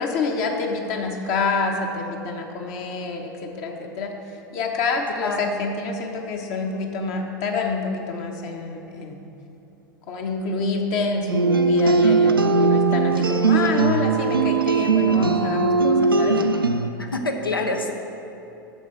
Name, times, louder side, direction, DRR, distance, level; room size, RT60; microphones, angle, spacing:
voice 1, 0.0-4.1 4.5-9.2 10.1-16.4, left 4 dB, 45° left, 2 dB, 1.2 m, -27 dB
voice 2, 5.2-5.7 17.0-17.9, left 2 dB, 80° left, 4 dB, 0.9 m, -27 dB
sound 1, 11.3-16.9, right 4 dB, 85° right, 0.5 m, -19 dB
10.5 x 6.9 x 4.6 m, 2.8 s
figure-of-eight pair, 85°, 11 cm